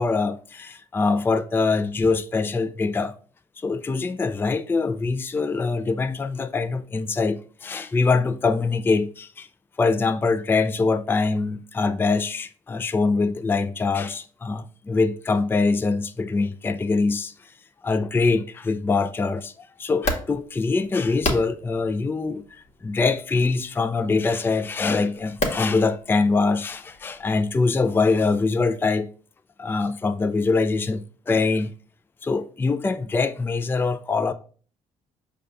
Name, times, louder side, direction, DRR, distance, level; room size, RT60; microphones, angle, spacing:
voice 1, 0.0-3.1 3.6-9.5 9.8-17.5 17.8-29.1 29.6-31.7 32.2-34.3, left 4 dB, 15° left, 0.3 m, -23 dB
sound 1, 19.9-27.7, left 2 dB, 50° left, 1.0 m, -34 dB
5.1 x 2.3 x 3.5 m
supercardioid pair, 65°, 15 cm